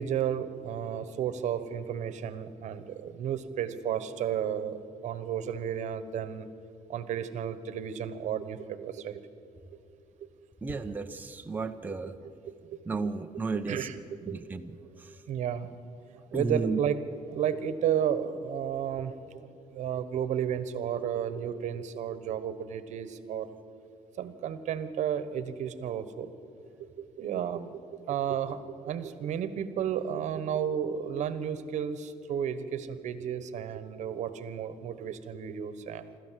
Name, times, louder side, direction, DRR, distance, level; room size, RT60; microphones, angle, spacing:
voice 1, 0.0-6.5 6.9-9.2 12.5-12.8 13.5-14.4 14.7-14.9 15.3-15.7 16.3-17.0 17.3-19.2 19.7-23.5 24.2-26.3 27.0-27.8 28.1-36.1, right 9 dB, 65° right, 13 dB, 1.2 m, -32 dB
voice 2, 10.6-12.2 12.9-13.9 14.3-14.7 15.0-15.2 16.3-16.8, right 4 dB, 15° right, 5 dB, 0.8 m, -33 dB
26.0 x 13.5 x 7.6 m, 2.6 s
cardioid pair, 125°, 13 cm